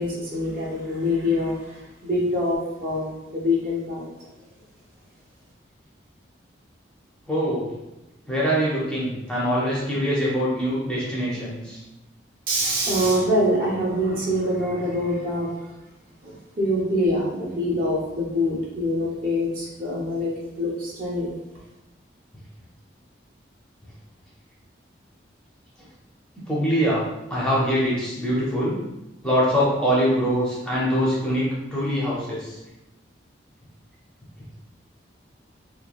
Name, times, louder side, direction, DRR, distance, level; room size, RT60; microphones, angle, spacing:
voice 1, 0.0-1.5 2.0-4.0 12.5-15.5 16.2-20.3 20.6-21.3, left 1 dB, 50° right, -4 dB, 0.6 m, -24 dB
voice 2, 7.3-7.7 8.3-11.8 26.5-27.0 27.3-28.8 29.2-32.6, equal, 5° left, -7 dB, 0.5 m, -23 dB
2.9 x 2.2 x 2.3 m, 0.98 s
head